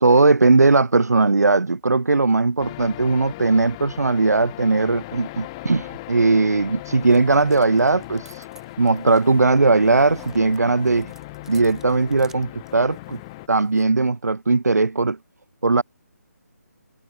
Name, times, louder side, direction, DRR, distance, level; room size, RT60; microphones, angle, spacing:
voice 1, 0.0-8.5 8.8-11.1 11.5-13.2 13.5-15.2 15.6-15.8, right 3 dB, 75° right, 0.4 m, -18 dB
sound 1, 2.6-13.5, left 21 dB, 20° left, 1.7 m, -38 dB
sound 2, 6.4-13.9, right 6 dB, 5° right, 1.1 m, -54 dB
figure-of-eight pair, 145°, 9 cm